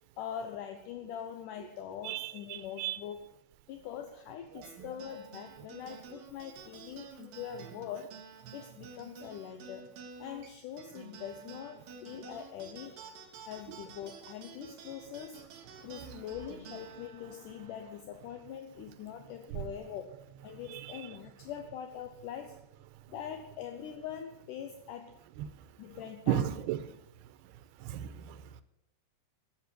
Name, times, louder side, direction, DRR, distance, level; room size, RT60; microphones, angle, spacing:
voice 1, 0.2-3.3 3.7-9.9 10.2-13.0 13.5-15.5 15.8-22.6 23.1-25.2 25.8-26.6, left 9 dB, 75° left, 7 dB, 2.0 m, -43 dB
voice 2, 2.0-3.0 4.5-4.7 15.8-16.0 19.5-19.7 20.7-20.8 25.4-25.5 26.3-26.8 27.8-28.6, right 11 dB, 90° right, 14 dB, 2.8 m, -35 dB
sound 1, 4.6-19.4, right 5 dB, 65° right, 3.1 m, -51 dB
12.0 x 8.0 x 9.1 m, 0.85 s
omnidirectional pair, 4.5 m